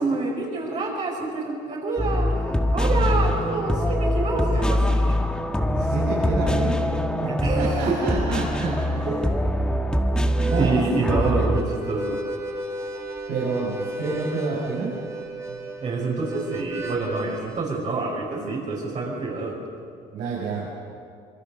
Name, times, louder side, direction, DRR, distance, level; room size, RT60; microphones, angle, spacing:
voice 1, 0.0-5.2 7.3-8.0 9.1-9.2 10.5-12.2 15.8-19.6, right 3 dB, 45° right, -4 dB, 5.6 m, -27 dB
sound 1, 2.0-11.6, left 1 dB, 5° left, 1.6 m, -23 dB
voice 2, 2.9-3.3 5.6-6.8 7.1-9.1 10.1-11.4 13.3-14.9 15.5-15.7 20.1-20.7, right 4 dB, 90° right, -5 dB, 6.1 m, -29 dB
Harmonica, 10.2-17.6, right 1 dB, 15° right, 2.7 m, -33 dB
26.0 x 22.5 x 6.7 m, 2.4 s
cardioid pair, 110°, 17 cm